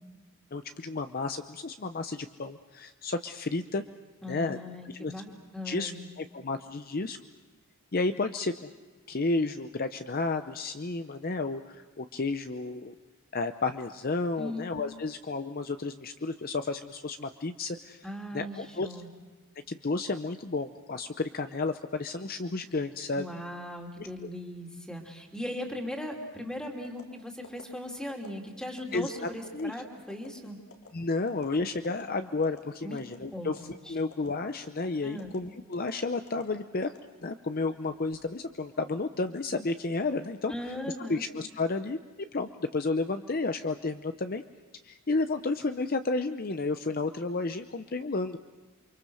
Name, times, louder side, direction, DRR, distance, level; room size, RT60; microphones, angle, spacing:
voice 1, 0.5-3.8 4.3-4.6 4.8-5.1 5.6-5.9 6.2-7.2 7.9-8.5 9.1-12.9 13.3-18.1 18.3-18.9 19.7-23.3 24.0-24.3 28.9-29.7 30.9-33.6 33.9-36.9 37.2-40.5 41.1-42.0 42.3-44.4 44.8-48.4, left 3 dB, 45° left, 8 dB, 0.7 m, -32 dB
voice 2, 4.2-5.3 5.5-6.1 14.4-14.6 18.0-19.1 23.1-30.6 32.8-33.0 33.3-33.5 33.8-34.0 35.0-35.3 40.5-41.2, left 1 dB, 5° left, 1 dB, 3.0 m, -38 dB
sound 1, 26.8-27.1 27.4-27.6 28.1-28.3 28.8-29.0 29.4-29.6 30.1-30.3 30.7-30.9 31.3-31.5 31.8-32.0 32.4-32.6 33.0-33.2 33.6-33.8 34.1-34.3 34.6-34.8 35.2-35.4 35.7-35.9 36.3-36.4 36.8-37.5 37.9-38.2, left 3 dB, 85° left, 3.7 m, -50 dB
28.5 x 24.5 x 6.4 m, 1.3 s
head